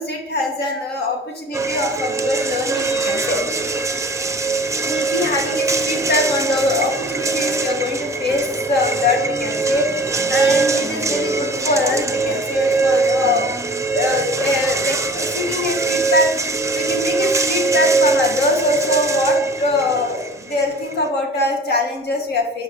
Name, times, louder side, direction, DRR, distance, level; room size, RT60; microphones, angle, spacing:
voice 1, 0.0-3.4 4.8-16.3 16.7-22.6, left 2 dB, 55° left, 1 dB, 2.3 m, -22 dB
sound 1, 1.5-21.1, right 4 dB, 15° right, 0.7 m, -22 dB
11.0 x 5.8 x 3.2 m, 0.85 s
cardioid pair, 90°, 20 cm